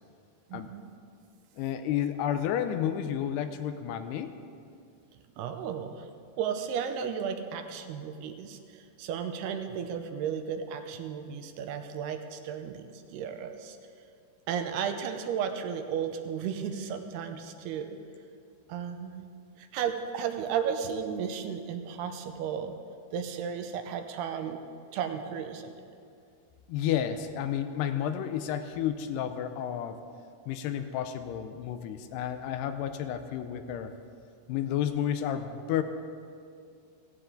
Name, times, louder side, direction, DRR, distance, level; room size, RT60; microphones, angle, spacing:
voice 1, 0.5-0.9 5.4-6.1 6.4-13.8 14.5-18.0 18.7-19.3 19.6-22.8 23.1-24.6 24.9-25.7, right 7 dB, 85° right, 6 dB, 2.6 m, -34 dB
voice 2, 1.6-4.3 26.7-30.0 30.5-33.9 34.5-35.8, left 10 dB, 85° left, 8 dB, 2.7 m, -31 dB
16.5 x 15.5 x 3.8 m, 2.4 s
omnidirectional pair, 4.8 m